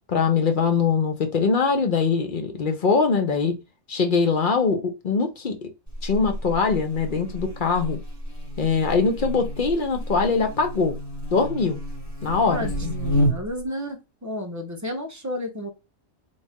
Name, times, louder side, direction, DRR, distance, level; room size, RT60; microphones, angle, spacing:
voice 1, 0.1-3.6 3.9-5.7 6.0-8.0 8.6-11.0 11.3-11.8 12.2-12.9, left 5 dB, 50° left, 0.7 m, -22 dB
Buzz, 5.9-13.6, equal, 15° left, 1.3 m, -30 dB
voice 2, 12.5-15.7, left 1 dB, 20° right, 0.6 m, -32 dB
3.9 x 2.5 x 3.5 m
omnidirectional pair, 1.3 m